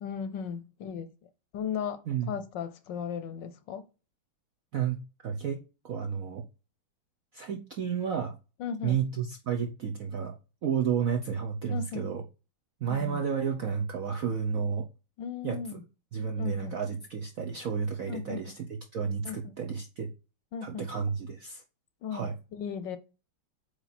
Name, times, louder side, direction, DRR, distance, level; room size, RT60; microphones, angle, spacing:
voice 1, 0.0-1.1 1.5-2.0 2.3-3.8 8.6-9.1 11.7-12.1 12.9-13.2 15.2-15.8 16.4-16.8 18.1-18.4 19.2-19.4 20.5-20.9 22.0-23.0, left 7 dB, 70° left, 1.2 m, -36 dB
voice 2, 4.7-5.6 5.8-6.4 7.3-8.3 8.8-10.4 10.6-12.2 12.8-14.8 15.4-15.8 16.1-20.1 20.6-21.6 22.1-22.3, right 7 dB, 65° right, 0.8 m, -31 dB
8.2 x 3.3 x 4.1 m
omnidirectional pair, 2.3 m